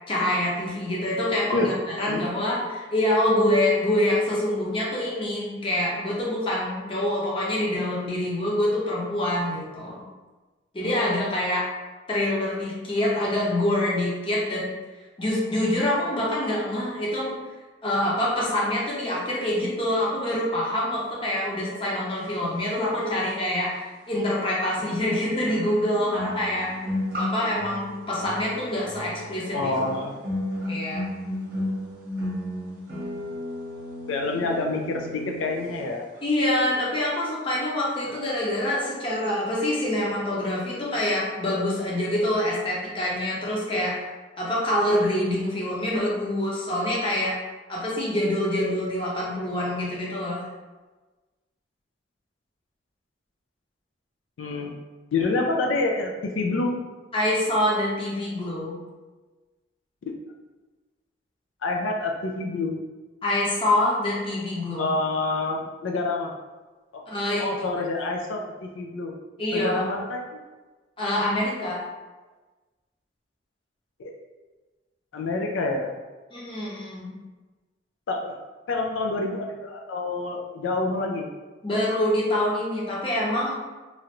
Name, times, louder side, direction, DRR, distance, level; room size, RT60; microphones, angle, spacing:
voice 1, 0.1-10.0 10.7-11.7 12.1-14.8 15.2-17.4 17.8-26.8 27.2-29.7 30.7-31.1 36.2-44.0 44.4-47.4 47.7-50.5 57.1-58.8 63.2-64.9 67.1-67.5 69.4-69.8 71.0-71.8 76.3-77.2 81.6-83.6, left 1 dB, 25° left, -5 dB, 0.7 m, -26 dB
sound 1, 23.4-23.5 24.8-35.9 36.1-36.4, left 1 dB, 45° right, 0.8 m, -34 dB
voice 2, 29.5-30.1 34.1-36.0 38.1-38.2 54.4-54.8 55.1-56.8 60.0-60.1 61.6-62.8 64.8-66.3 66.9-67.0 67.4-69.1 69.5-70.4 74.0-74.2 75.1-75.9 78.1-78.4 78.7-81.3, left 3 dB, 85° left, 1 dB, 0.4 m, -27 dB
3.1 x 2.4 x 2.9 m, 1.2 s
head